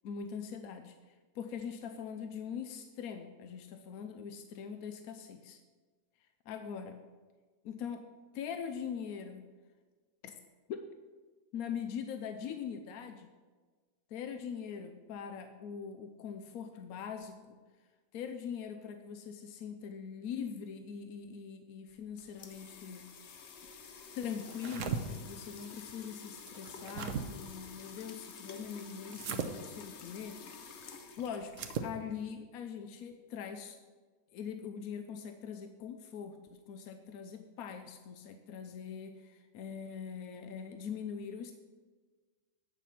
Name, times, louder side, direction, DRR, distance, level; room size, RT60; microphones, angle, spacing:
voice 1, 0.0-5.6 6.5-7.0 7.6-8.0 8.3-9.4 10.2-10.3 10.7-10.8 11.5-13.3 14.1-17.6 18.1-23.0 24.1-30.7 31.2-31.5 31.8-33.8 34.3-41.5, left 7 dB, 85° left, 7 dB, 1.1 m, -42 dB
sound 1, 21.9-32.2, left 5 dB, 55° left, 1.0 m, -50 dB
sound 2, 24.4-25.0 26.5-27.2 29.1-29.5 31.5-31.9, right 7 dB, 65° right, 1.0 m, -37 dB
8.3 x 7.2 x 5.8 m, 1.4 s
omnidirectional pair, 1.5 m